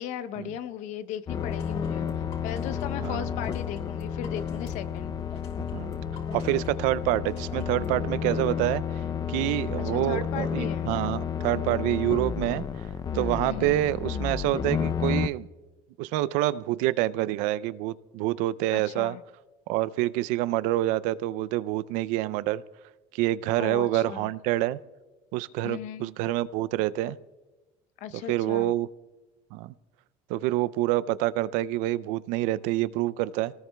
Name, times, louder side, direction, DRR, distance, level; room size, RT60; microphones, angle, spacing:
voice 1, 0.0-5.1 9.9-10.9 13.4-13.8 18.7-19.2 23.6-24.3 25.6-26.1 28.0-28.7, left 10 dB, 75° left, 12 dB, 0.8 m, -37 dB
sound 1, 1.3-8.0, left 4 dB, 55° left, 3.5 m, -43 dB
sound 2, 1.3-15.3, left 8 dB, 30° left, 0.5 m, -31 dB
voice 2, 6.3-8.8 9.3-12.6 13.1-15.5 16.0-19.2 19.7-22.6 23.1-24.8 25.3-27.2 28.3-28.9 29.5-29.7 30.3-33.5, right 15 dB, 80° right, 17 dB, 0.4 m, -27 dB
25.0 x 18.5 x 2.3 m, 1.2 s
cardioid pair, 115°, 13 cm